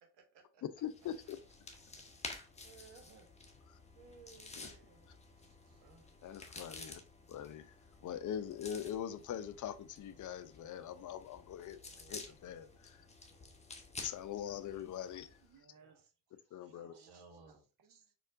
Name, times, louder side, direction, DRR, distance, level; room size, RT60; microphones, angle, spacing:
voice 1, 0.0-0.6 2.1-2.4 2.6-3.3 3.9-5.0 5.8-6.2 11.9-12.7 13.3-14.0 15.8-16.0 16.8-17.6, right 4 dB, 70° right, 1.1 m, -61 dB
voice 2, 0.6-1.4 3.7-3.8 4.6-4.7 6.2-7.0 7.3-11.8 12.1-13.0 14.0-15.4 16.5-16.9, left 9 dB, 45° left, 0.5 m, -43 dB
sound 1, 0.8-15.5, left 3 dB, 15° left, 0.8 m, -52 dB
voice 3, 5.4-6.0 6.2-6.3 15.4-18.1, right 6 dB, 50° right, 0.8 m, -66 dB
4.2 x 2.5 x 2.5 m
hypercardioid pair, 45°, 43 cm